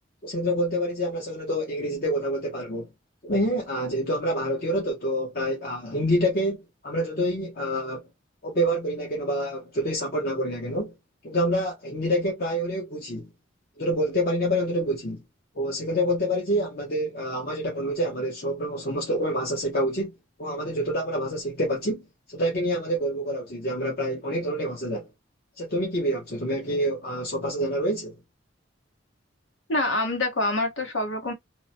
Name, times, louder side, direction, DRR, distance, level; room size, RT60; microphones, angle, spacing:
voice 1, 0.2-2.9 3.2-8.1 8.4-10.9 11.2-13.3 13.8-15.2 15.5-20.1 20.4-22.0 22.3-25.1 25.6-28.1, equal, 50° left, 0.7 m, -27 dB
voice 2, 29.7-31.3, left 2 dB, 80° left, 1.0 m, -26 dB
2.9 x 2.0 x 2.6 m
head